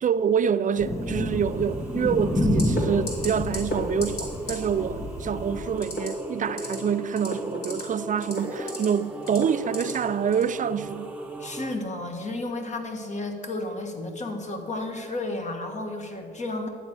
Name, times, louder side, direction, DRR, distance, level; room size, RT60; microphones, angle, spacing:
voice 1, 0.0-11.1, right 7 dB, 40° right, 0.5 m, -26 dB
sound 1, 0.7-11.8, right 2 dB, 5° right, 1.1 m, -39 dB
Thunder, 0.8-5.8, left 1 dB, 15° left, 1.0 m, -29 dB
sound 2, 2.6-2.8 3.1-3.3 3.5-4.2 4.5-4.6 5.8-6.1 6.4-6.7 7.1-7.8 8.2-8.8 9.3-9.9 10.3-10.5, left 1 dB, 55° left, 3.2 m, -31 dB
voice 2, 11.4-16.7, left 2 dB, 35° left, 1.8 m, -32 dB
11.0 x 8.9 x 6.2 m
cardioid pair, 90°, 20 cm